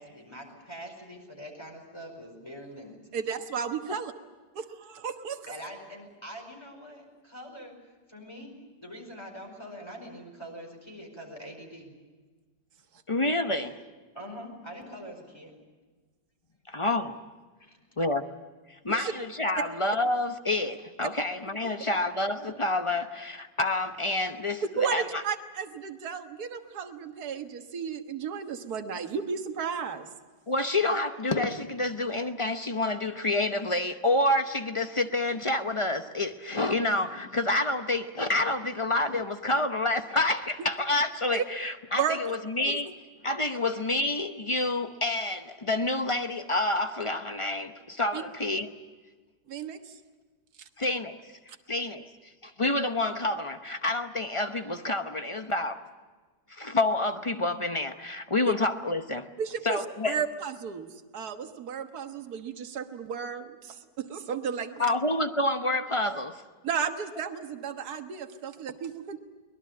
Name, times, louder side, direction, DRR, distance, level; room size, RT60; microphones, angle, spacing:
voice 1, 0.0-3.2 5.5-7.8 8.1-11.9 14.1-15.5 17.6-17.8, equal, 15° left, 5.0 m, -44 dB
voice 2, 3.1-4.1 4.6-5.4 18.9-19.1 24.8-30.1 40.6-40.7 41.3-41.5 42.0-42.2 48.1-48.2 49.5-49.9 58.4-58.5 59.4-59.8 60.0-64.9 66.6-69.2, right 7 dB, 60° right, 1.8 m, -33 dB
voice 3, 13.1-13.8 16.7-17.2 18.0-18.3 18.7-25.2 30.5-48.7 50.8-51.2 51.7-52.1 52.4-55.8 56.5-59.3 59.6-60.2 64.8-66.4, left 2 dB, 30° left, 0.6 m, -28 dB
23.0 x 20.5 x 8.6 m
omnidirectional pair, 1.9 m